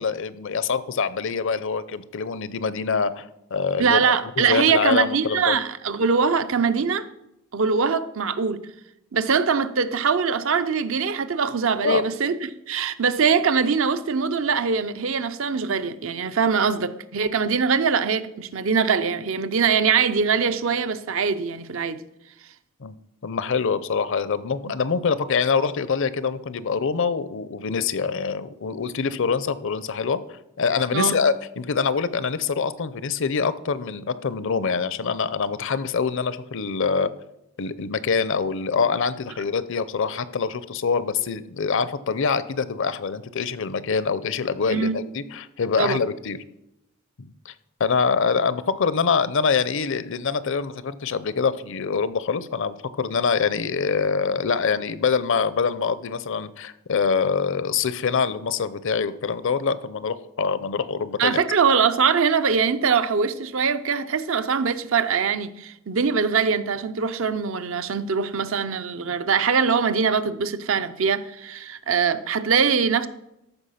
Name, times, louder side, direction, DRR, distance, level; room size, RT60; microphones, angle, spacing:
voice 1, 0.0-3.3 3.5-5.6 11.8-12.0 22.8-22.9 23.2-30.2 30.6-37.1 37.6-46.4 47.2-47.5 47.8-61.4, left 5 dB, 60° left, 0.6 m, -25 dB
voice 2, 3.8-7.1 7.5-8.6 9.1-22.0 24.7-24.8 30.9-31.2 44.7-45.0 45.8-46.0 61.2-73.1, right 6 dB, 65° right, 0.6 m, -22 dB
13.5 x 6.1 x 5.7 m
head